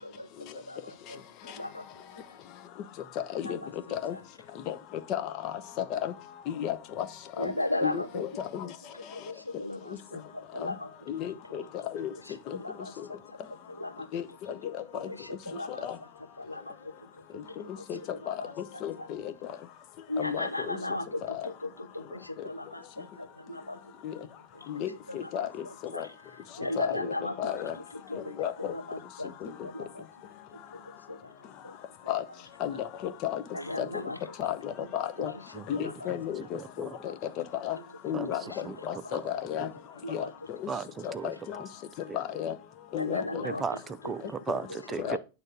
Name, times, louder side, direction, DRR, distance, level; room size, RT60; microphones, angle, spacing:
voice 1, 0.0-2.4 3.4-3.7 4.1-4.2 7.4-8.2 8.9-10.9 12.3-14.2 14.6-15.9 16.4-17.8 18.1-19.1 20.1-23.9 24.2-24.3 24.5-24.8 25.1-26.1 26.6-27.5 27.9-30.1 30.5-31.7 32.7-32.8 33.5-34.3 35.5-36.1 37.7-37.8 38.4-38.6 40.0-40.3 43.0-43.6 44.0-44.3 44.7-44.8 45.0-45.2, left 1 dB, 85° left, 0.9 m, -38 dB
voice 2, 5.1-5.5 5.9-6.1 6.5-7.0 7.4-7.5 7.8-8.7 10.6-10.7 11.1-11.6 11.9-12.1 12.5-12.6 14.1-14.2 14.6-15.1 15.8-15.9 17.9-18.0 18.3-18.4 18.8-19.2 20.2-20.8 24.0-24.1 24.7-25.5 25.9-26.1 26.8-27.1 27.4-27.7 28.4-28.7 29.4-29.5 32.1-32.2 32.6-33.4 33.8-33.9 34.4-35.3 35.7-36.9 37.6-37.8 38.0-38.4 38.8-39.7 40.1-40.3 41.0-41.6 42.1-42.5 42.9-43.4 45.0-45.2, left 10 dB, 40° left, 0.9 m, -33 dB
voice 3, 36.5-37.0 38.1-38.3 38.6-38.8 39.1-39.2 40.7-41.3 42.1-42.2 43.4-45.2, right 5 dB, 20° right, 0.6 m, -36 dB
9.1 x 3.6 x 5.8 m
figure-of-eight pair, 90°, 0 cm